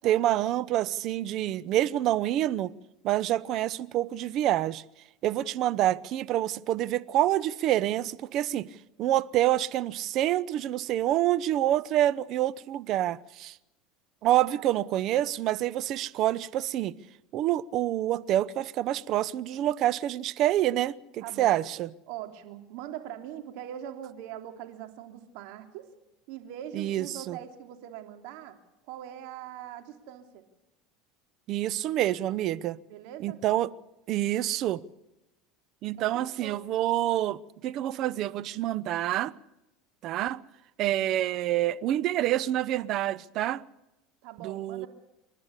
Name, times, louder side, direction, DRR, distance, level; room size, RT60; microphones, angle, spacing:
voice 1, 0.0-2.7 3.0-4.8 5.2-8.7 9.0-13.5 14.2-16.9 17.3-21.9 26.7-27.4 31.5-32.8 33.2-33.7 34.1-34.8 35.8-39.3 40.0-40.4 40.8-43.6 44.4-44.9, right 13 dB, 55° right, 0.8 m, -27 dB
voice 2, 21.2-21.6 22.1-25.9 26.3-28.6 28.9-30.4 32.9-33.4 36.0-36.6 44.2-44.9, right 11 dB, 70° right, 3.2 m, -42 dB
28.5 x 12.0 x 8.3 m
supercardioid pair, 105°, 0 cm